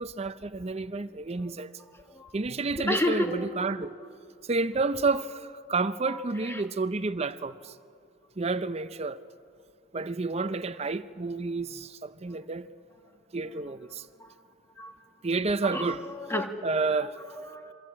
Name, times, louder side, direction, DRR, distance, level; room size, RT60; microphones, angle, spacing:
voice 1, 0.0-1.7 2.3-3.9 4.5-7.7 8.4-9.2 9.9-12.7 13.3-14.0 15.2-16.0 16.6-17.1, right 3 dB, 30° right, 0.6 m, -30 dB
voice 2, 2.7-3.6 6.1-6.2 6.4-6.6 13.5-13.6 14.2-14.3 14.8-14.9 15.6-16.5 17.3-17.7, left 1 dB, 10° left, 1.6 m, -31 dB
27.0 x 23.0 x 8.6 m
head